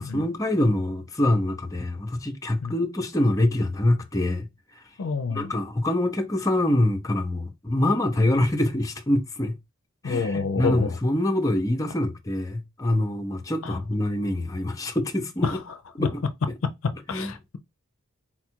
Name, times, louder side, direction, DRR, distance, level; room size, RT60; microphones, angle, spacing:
voice 1, 0.0-4.5 5.3-9.6 10.0-15.5 16.0-16.2 17.1-17.3, left 1 dB, 15° left, 0.6 m, -25 dB
voice 2, 5.0-5.5 10.0-11.0 13.6-13.8 15.4-15.6 16.0-16.1 17.1-17.6, left 4 dB, 70° left, 0.5 m, -28 dB
4.2 x 2.4 x 4.4 m
head